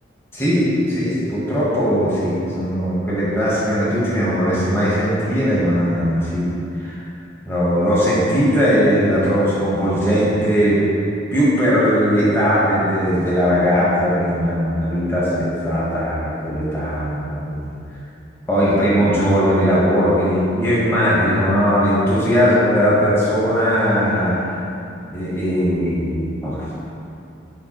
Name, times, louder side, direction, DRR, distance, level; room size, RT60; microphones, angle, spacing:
voice 1, 0.3-6.5 6.8-7.0 7.5-10.8 11.3-17.7 18.5-24.6 25.1-26.7, equal, 15° left, -9 dB, 1.1 m, -19 dB
7.1 x 4.8 x 3.0 m, 2.7 s
head